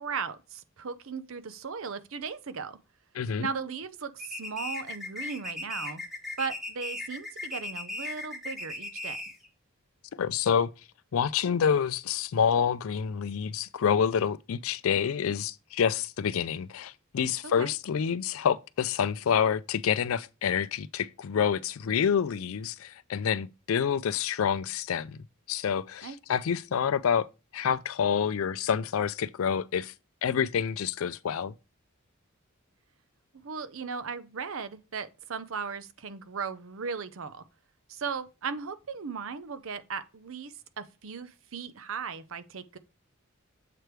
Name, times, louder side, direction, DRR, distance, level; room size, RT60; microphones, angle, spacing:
voice 1, 0.0-2.8 3.4-6.0 6.4-9.2 17.4-17.7 26.0-26.2 33.3-37.4 37.9-42.8, right 5 dB, 70° right, 0.6 m, -37 dB
voice 2, 3.1-3.5 10.1-10.7 11.1-25.2 25.5-27.3 27.5-29.9 30.2-31.5, left 7 dB, 75° left, 0.4 m, -27 dB
sound 1, 4.2-9.5, left 2 dB, ahead, 0.9 m, -37 dB
7.7 x 3.3 x 4.6 m
head